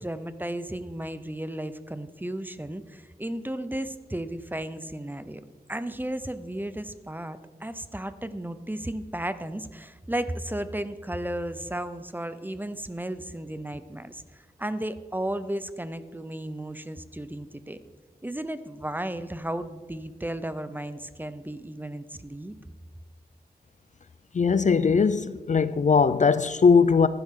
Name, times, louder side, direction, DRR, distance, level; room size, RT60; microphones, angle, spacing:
voice 1, 0.0-5.4 5.7-17.8 18.2-22.6, right 1 dB, 10° right, 0.6 m, -34 dB
voice 2, 24.3-27.1, left 5 dB, 50° left, 0.4 m, -20 dB
15.0 x 11.5 x 3.8 m
wide cardioid pair, 85°, 16 cm